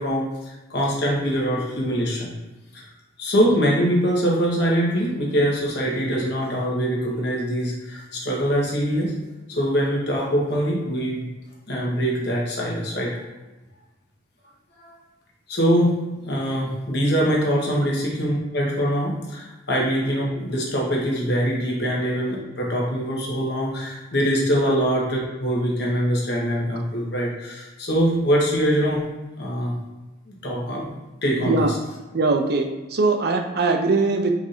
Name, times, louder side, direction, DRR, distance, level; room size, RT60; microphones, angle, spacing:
voice 1, 0.0-2.3 2.7-2.8 3.2-9.1 9.5-11.3 11.7-13.2 14.8-15.0 15.5-29.0 29.4-29.8 30.3-30.9 31.2-31.8, equal, 55° left, -3 dB, 1.2 m, -23 dB
voice 2, 31.4-31.7 32.1-34.3, right 3 dB, 50° right, 5 dB, 0.4 m, -21 dB
4.8 x 2.6 x 4.2 m, 1.1 s
head